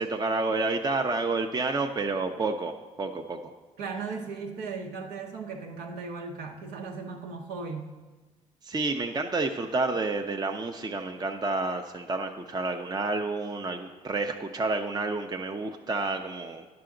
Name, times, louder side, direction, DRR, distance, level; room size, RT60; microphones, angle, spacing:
voice 1, 0.0-3.5 8.6-16.7, right 3 dB, 25° right, 4 dB, 0.6 m, -29 dB
voice 2, 3.8-7.9, right 4 dB, 80° right, 1 dB, 1.0 m, -37 dB
10.5 x 5.9 x 3.8 m, 1.3 s
supercardioid pair, 60°, 16 cm